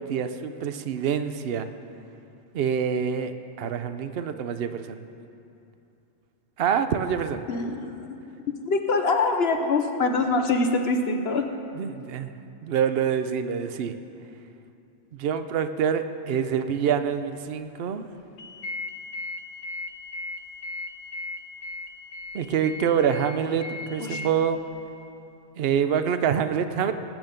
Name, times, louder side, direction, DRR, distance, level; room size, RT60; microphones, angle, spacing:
voice 1, 0.0-1.7 2.5-5.0 6.6-7.4 11.7-12.3 12.6-14.0 15.1-18.1 22.3-24.6 25.6-26.9, right 7 dB, 55° right, 10 dB, 0.8 m, -26 dB
voice 2, 7.5-8.2 8.6-11.4 24.0-24.2, left 3 dB, 60° left, 5 dB, 1.0 m, -24 dB
sound 1, 18.4-24.3, left 2 dB, 80° left, 1.1 m, -37 dB
20.0 x 9.0 x 5.2 m, 2.7 s
omnidirectional pair, 1.3 m